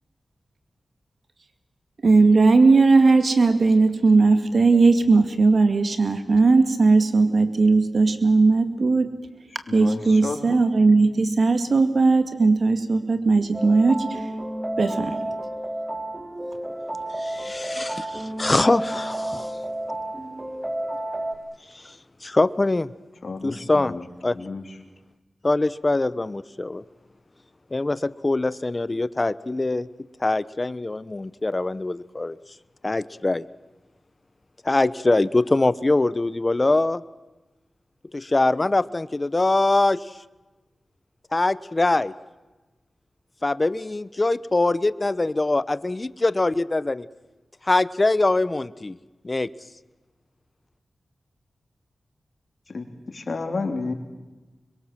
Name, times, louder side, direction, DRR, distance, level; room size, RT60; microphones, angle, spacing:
voice 1, 2.0-9.1 9.7-14.2 14.8-15.2, right 3 dB, 65° right, 8 dB, 2.3 m, -18 dB
voice 2, 9.5-10.4 10.8-11.1 23.2-24.8 52.7-53.9, left 3 dB, 60° left, 5 dB, 3.4 m, -32 dB
sound 1, 13.5-21.3, right 1 dB, 20° right, 3.1 m, -31 dB
voice 3, 17.2-19.6 21.7-22.9 23.4-24.0 24.2-24.4 25.4-26.8 27.7-29.9 30.2-32.4 32.8-33.4 34.6-37.0 38.1-40.1 41.3-42.1 43.4-47.1 47.6-49.0 49.2-49.5, left 2 dB, 35° left, 18 dB, 0.9 m, -23 dB
25.5 x 22.5 x 7.6 m, 1.1 s
cardioid pair, 40°, 0 cm